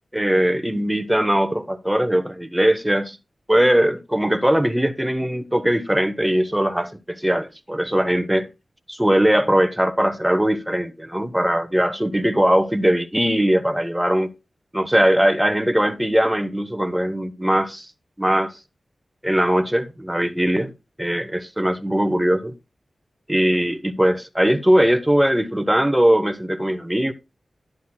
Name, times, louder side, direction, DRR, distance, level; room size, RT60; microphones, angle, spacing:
voice 1, 0.1-3.2 3.5-8.5 8.9-14.3 14.7-17.9 18.2-18.5 19.2-20.7 21.0-22.5 23.3-27.1, equal, 10° right, 1.0 m, -20 dB
10.5 x 9.0 x 2.3 m
cardioid pair, 50°, 0 cm